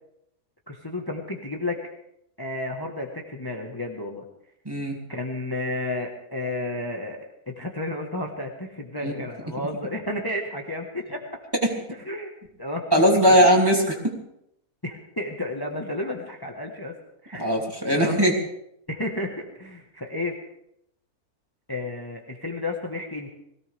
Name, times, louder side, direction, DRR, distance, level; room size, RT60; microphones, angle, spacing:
voice 1, 0.7-1.8 2.4-4.2 5.1-11.2 12.0-12.3 12.6-12.9 13.2-13.3 14.8-16.9 17.2-17.5 17.9-18.2 18.9-20.3 21.7-23.3, left 2 dB, 15° left, 1 dB, 1.4 m, -32 dB
voice 2, 4.6-5.0 9.0-9.1 11.6-11.7 12.9-14.2 17.4-18.3, equal, 15° right, -1 dB, 2.9 m, -19 dB
21.5 x 17.0 x 3.5 m, 0.77 s
omnidirectional pair, 1.7 m